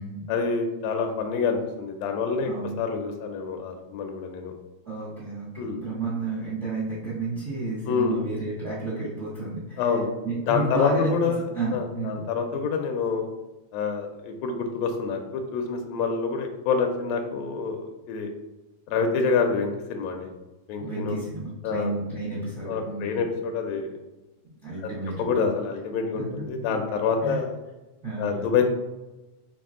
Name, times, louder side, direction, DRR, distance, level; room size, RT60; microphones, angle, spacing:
voice 1, 0.3-2.5 2.8-4.5 5.6-5.9 7.9-8.2 9.8-10.1 10.5-11.4 11.7-13.3 13.7-18.3 18.9-20.3 20.7-21.2 21.6-21.9 22.7-23.9 24.8-24.9 25.2-27.6 28.2-28.6, left 5 dB, 80° left, 4 dB, 1.5 m, -27 dB
voice 2, 2.4-2.8 4.8-12.2 20.8-23.2 24.6-25.3 26.1-26.3 26.7-26.8 27.2-27.4 28.0-28.5, right 2 dB, 65° right, -8 dB, 0.7 m, -31 dB
5.9 x 2.4 x 3.6 m, 1.0 s
omnidirectional pair, 3.6 m